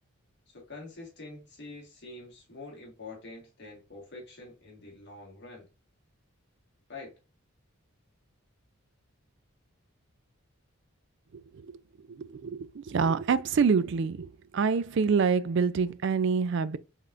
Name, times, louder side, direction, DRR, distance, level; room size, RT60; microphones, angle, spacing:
voice 1, 0.5-5.7 6.9-7.1, left 3 dB, 50° left, 1.7 m, -46 dB
voice 2, 12.9-14.3 14.5-16.8, right 5 dB, 55° right, 0.3 m, -25 dB
5.6 x 3.5 x 2.5 m
head